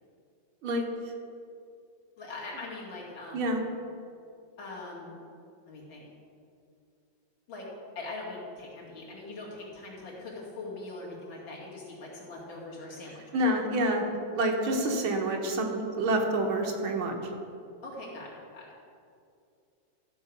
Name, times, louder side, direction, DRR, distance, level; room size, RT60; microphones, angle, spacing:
voice 1, 2.2-3.5 4.6-5.2 5.7-6.0 7.5-7.7 8.0-13.4 17.8-18.7, left 2 dB, 75° left, -5 dB, 3.0 m, -42 dB
voice 2, 13.3-14.0 14.3-17.2, right 1 dB, 85° right, 2 dB, 2.1 m, -27 dB
13.5 x 4.7 x 6.8 m, 2.5 s
omnidirectional pair, 2.2 m